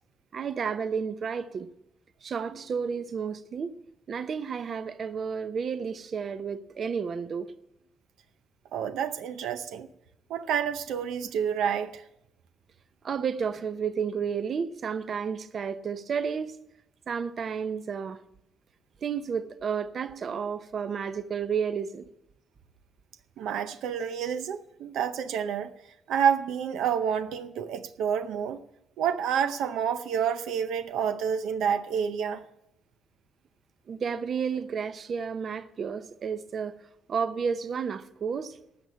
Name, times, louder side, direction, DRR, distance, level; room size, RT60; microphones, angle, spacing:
voice 1, 0.3-1.7 2.2-3.7 4.1-7.5 11.2-11.3 13.0-16.6 17.1-18.2 19.0-22.1 33.9-36.8 37.1-38.6, right 6 dB, 50° right, 0.8 m, -31 dB
voice 2, 8.7-9.9 10.3-12.0 23.4-25.7 26.1-28.6 29.0-32.4, right 8 dB, 85° right, 0.6 m, -28 dB
13.0 x 7.0 x 8.5 m
cardioid pair, 90°, 0 cm